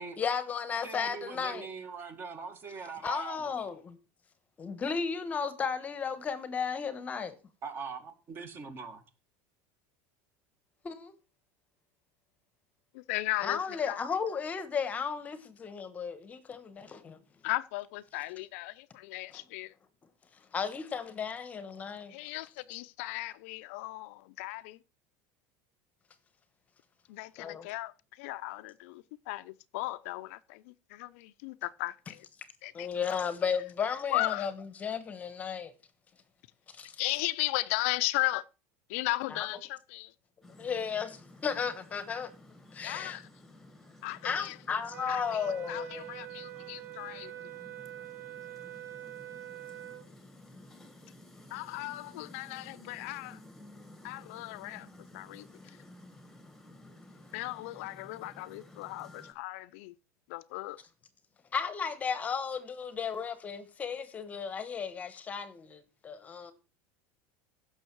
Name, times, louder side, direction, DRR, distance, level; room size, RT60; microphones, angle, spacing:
voice 1, 0.2-1.7 3.0-4.0 4.6-7.3 10.8-11.1 13.4-17.2 20.5-22.1 27.4-27.7 32.7-34.5 34.8-35.7 36.7-37.0 39.3-39.5 40.6-42.3 42.7-43.2 44.2-46.1 61.5-66.5, left 6 dB, 20° left, 1.2 m, -34 dB
voice 2, 0.8-3.5 7.6-9.0, right 5 dB, 30° right, 1.8 m, -42 dB
voice 3, 12.9-14.0 17.4-19.8 22.1-24.8 27.1-32.3 32.6-33.2 34.1-34.5 37.0-38.5 38.9-40.1 42.8-43.3 44.0-44.6 45.1-47.5 51.5-53.4 54.0-54.9 55.1-55.8 57.3-59.9 60.3-60.8, left 19 dB, 70° left, 0.6 m, -36 dB
sound 1, 40.4-59.3, left 2 dB, 5° left, 1.5 m, -54 dB
sound 2, 44.9-50.1, right 15 dB, 85° right, 2.2 m, -45 dB
15.5 x 6.3 x 4.6 m
cardioid pair, 165°, 8 cm